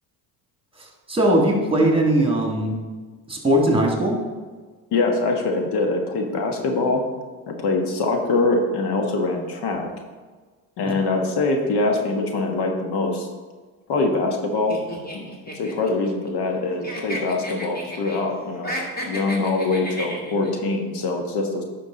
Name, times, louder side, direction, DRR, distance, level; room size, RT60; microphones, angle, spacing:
voice 1, 1.1-2.8 3.3-4.2 10.9-11.0, right 1 dB, 10° right, 1 dB, 2.3 m, -19 dB
voice 2, 4.9-7.0 7.5-9.9 10.8-13.3 13.9-14.8 15.1-15.3 15.5-18.7 19.0-21.6, left 3 dB, 60° left, 3 dB, 1.4 m, -23 dB
sound 1, 14.7-16.6 16.8-18.2 18.5-20.5, equal, 20° left, 2.4 m, -33 dB
9.8 x 6.1 x 4.0 m, 1.4 s
hypercardioid pair, 70°, 44 cm